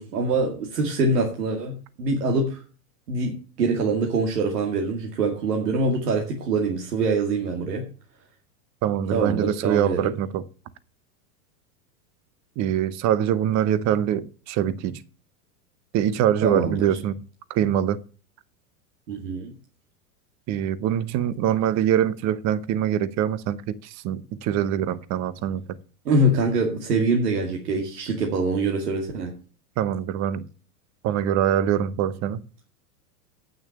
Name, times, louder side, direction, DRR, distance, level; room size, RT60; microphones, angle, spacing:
voice 1, 0.0-2.6 3.1-7.8 9.1-10.1 16.4-16.9 19.1-19.5 26.1-29.3, right 2 dB, 90° right, 2.3 m, -24 dB
voice 2, 8.8-10.5 12.6-15.0 15.9-17.2 17.5-18.0 20.5-25.7 29.8-30.5 31.0-32.4, right 10 dB, 35° right, 0.8 m, -24 dB
9.1 x 6.1 x 8.3 m
hypercardioid pair, 120°, 46 cm